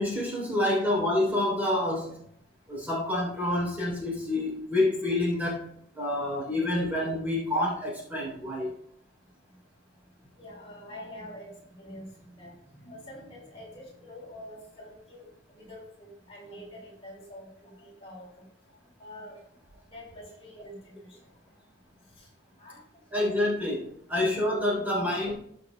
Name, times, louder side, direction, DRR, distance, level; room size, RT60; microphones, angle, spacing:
voice 1, 0.0-2.2 2.7-5.6 5.9-8.7 23.1-25.3, left 1 dB, 10° right, -6 dB, 3.7 m, -28 dB
voice 2, 10.4-18.4 19.0-19.4 19.9-21.5 22.2-22.3 22.6-23.3 24.1-24.2 24.7-24.8, left 1 dB, 30° left, -3 dB, 4.4 m, -46 dB
20.0 x 6.8 x 2.3 m, 0.68 s
head